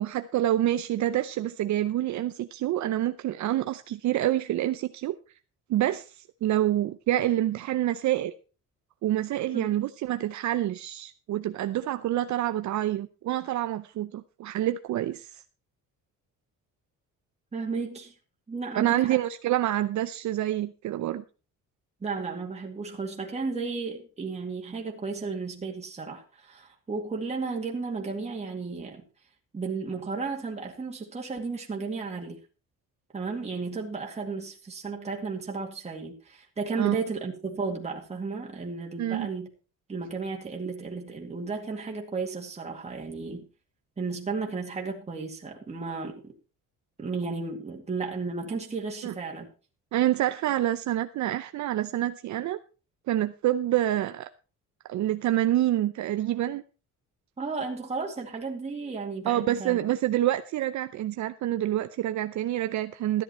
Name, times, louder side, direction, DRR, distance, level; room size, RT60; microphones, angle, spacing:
voice 1, 0.0-5.2 5.7-8.3 9.0-15.4 18.8-21.2 36.8-37.0 39.0-39.3 49.0-49.1 49.9-52.6 53.1-54.3 54.9-56.6 59.3-63.2, right 13 dB, 65° right, 0.7 m, -27 dB
voice 2, 17.5-18.1 18.5-19.2 22.0-29.1 29.5-32.4 33.1-39.5 39.9-43.5 44.0-46.3 47.0-49.5 57.4-59.8, right 4 dB, 20° right, 2.2 m, -34 dB
13.5 x 10.0 x 4.3 m
cardioid pair, 125°, 31 cm